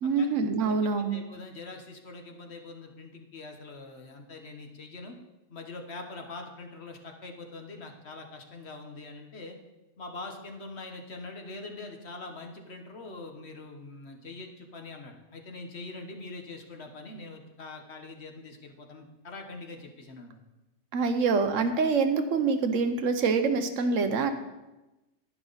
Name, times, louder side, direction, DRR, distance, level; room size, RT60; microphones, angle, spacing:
voice 1, 0.0-1.2 20.9-24.3, right 4 dB, 80° right, 8 dB, 1.2 m, -25 dB
voice 2, 0.6-5.2 5.5-9.6 10.0-20.4 21.7-21.8, left 3 dB, 60° left, 3 dB, 1.4 m, -43 dB
10.5 x 10.5 x 4.0 m, 1.0 s
omnidirectional pair, 1.3 m